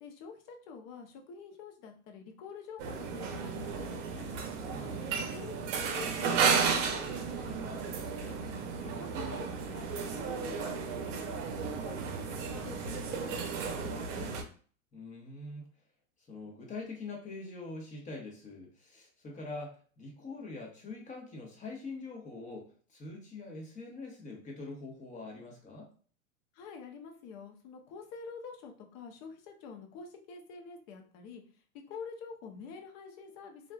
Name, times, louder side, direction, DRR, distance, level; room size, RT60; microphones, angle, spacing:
voice 1, 0.0-4.3 5.0-5.5 5.8-8.4 9.0-11.3 11.6-14.3 26.5-31.4 31.9-33.7, left 5 dB, 40° left, 3 dB, 0.7 m, -47 dB
sound 1, 2.8-14.4, right 5 dB, 60° right, 0.7 m, -33 dB
voice 2, 4.7-5.1 8.8-9.0 14.9-15.7 16.3-25.9, left 3 dB, 15° left, -1 dB, 1.0 m, -44 dB
3.0 x 2.4 x 2.3 m, 0.43 s
hypercardioid pair, 120°, 43 cm